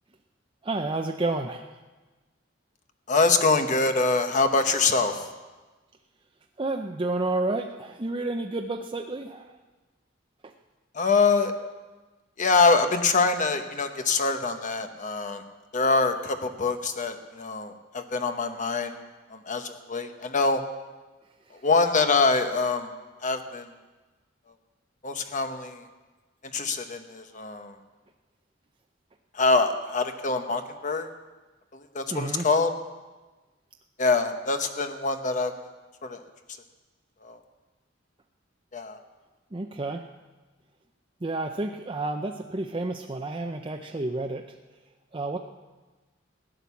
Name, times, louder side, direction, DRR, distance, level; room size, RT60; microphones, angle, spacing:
voice 1, 0.6-1.7 6.6-9.5 10.4-10.5 21.5-21.6 32.1-32.5 39.5-40.1 41.2-44.5 45.1-45.4, right 2 dB, 25° right, 3 dB, 0.6 m, -30 dB
voice 2, 3.1-5.3 10.9-11.5 12.4-15.4 15.7-19.0 19.3-20.6 21.6-22.9 23.2-23.7 25.0-25.8 26.5-27.7 29.3-31.1 31.7-32.7 34.0-35.5 36.0-36.2 37.2-37.4 38.7-39.0, left 4 dB, 40° left, 7 dB, 1.0 m, -24 dB
15.5 x 10.0 x 7.1 m, 1.2 s
head